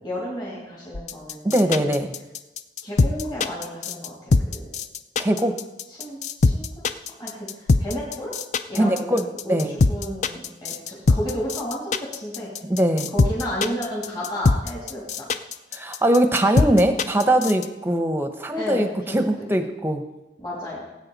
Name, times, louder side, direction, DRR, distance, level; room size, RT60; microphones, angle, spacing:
voice 1, 0.0-1.8 2.8-4.7 5.3-5.4 6.0-6.9 7.2-8.3 8.7-9.6 9.9-12.5 13.1-15.3 18.5-19.2 20.4-20.8, equal, 25° left, -7 dB, 2.9 m, -32 dB
sound 1, 0.9-17.7, left 3 dB, 40° left, 0.4 m, -22 dB
voice 2, 1.4-2.1 5.2-5.6 8.7-9.8 12.6-13.1 15.7-20.0, right 1 dB, 10° right, 7 dB, 0.8 m, -21 dB
18.0 x 8.6 x 4.1 m, 1.0 s
head